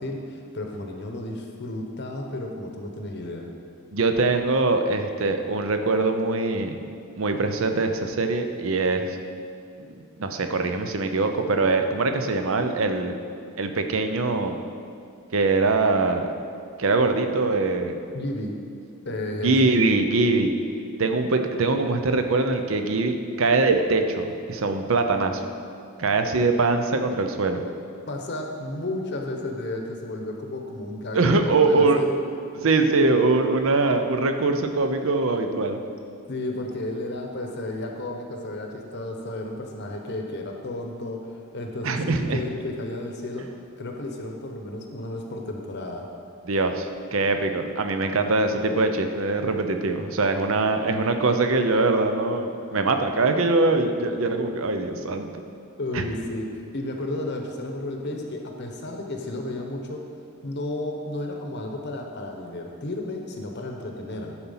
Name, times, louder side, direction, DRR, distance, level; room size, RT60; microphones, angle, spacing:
voice 1, 0.0-3.5 18.1-18.6 19.0-19.9 28.1-31.2 31.6-32.2 36.3-43.5 43.8-46.1 55.8-60.0 60.4-64.3, left 1 dB, 50° left, 2 dB, 0.9 m, -32 dB
voice 2, 3.9-6.8 7.2-9.2 9.9-13.2 13.6-14.6 15.3-16.3 16.8-18.0 19.4-20.5 21.0-25.4 26.0-27.6 31.1-32.0 32.6-35.8 41.8-42.4 46.5-55.4 55.9-56.0, right 3 dB, 65° right, 6 dB, 0.6 m, -23 dB
11.0 x 4.3 x 5.6 m, 2.4 s
head